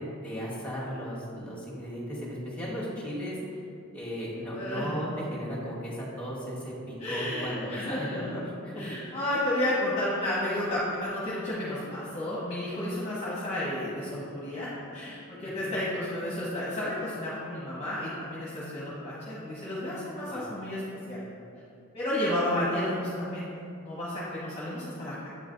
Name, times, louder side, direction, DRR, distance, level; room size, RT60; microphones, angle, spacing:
voice 1, 0.0-3.6 3.9-8.9 20.3-20.5, equal, 5° left, -6 dB, 1.5 m, -36 dB
voice 2, 4.5-5.0 7.0-8.3 8.8-20.8 21.1-21.2 21.9-23.5 23.8-25.3, left 1 dB, 30° left, -8 dB, 0.9 m, -32 dB
8.3 x 3.2 x 3.8 m, 2.6 s
head